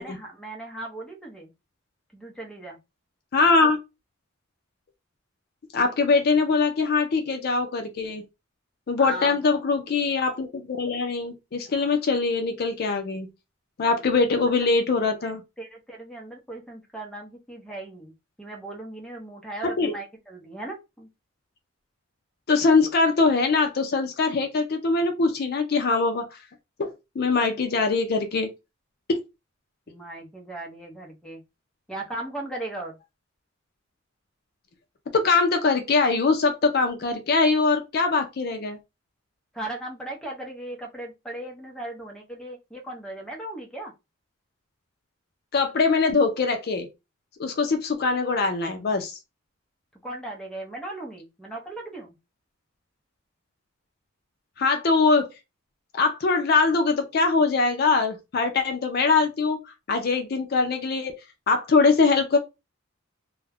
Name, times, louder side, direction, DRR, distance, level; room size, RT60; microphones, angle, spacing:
voice 1, 0.0-1.5 2.1-2.8 9.0-9.6 15.2-18.1 18.4-21.1 29.9-31.4 31.9-33.0 39.5-43.9 50.0-52.2, right 2 dB, 5° left, 0.6 m, -37 dB
voice 2, 3.3-3.8 5.7-8.2 8.9-13.3 13.8-15.4 19.8-19.9 22.5-26.3 26.8-28.5 35.1-38.8 45.5-46.9 47.4-49.1 54.6-55.3 55.9-59.6 59.9-61.1 61.5-62.4, left 4 dB, 50° left, 0.4 m, -22 dB
2.3 x 2.1 x 3.3 m
head